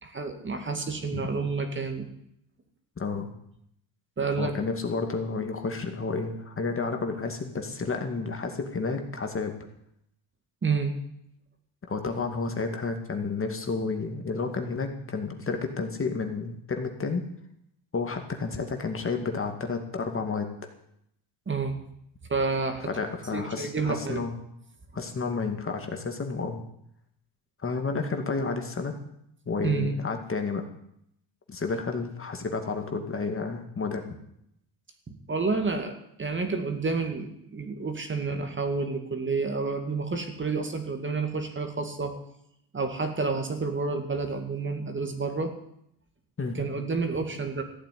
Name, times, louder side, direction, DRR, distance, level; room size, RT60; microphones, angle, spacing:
voice 1, 0.0-2.1 4.2-4.5 10.6-10.9 21.5-21.8 22.3-22.9 23.3-24.2 29.6-30.0 35.1-35.9 36.2-42.1 42.7-45.5 46.5-47.6, right 4 dB, 25° right, 5 dB, 2.3 m, -29 dB
voice 2, 3.0-3.3 4.4-9.5 11.9-17.2 17.9-20.5 22.8-24.3 24.9-26.6 27.6-28.9 29.5-30.6 31.5-34.1 46.4-46.6, left 4 dB, 30° left, 4 dB, 2.3 m, -31 dB
14.5 x 9.1 x 9.4 m, 0.74 s
cardioid pair, 110°, 44 cm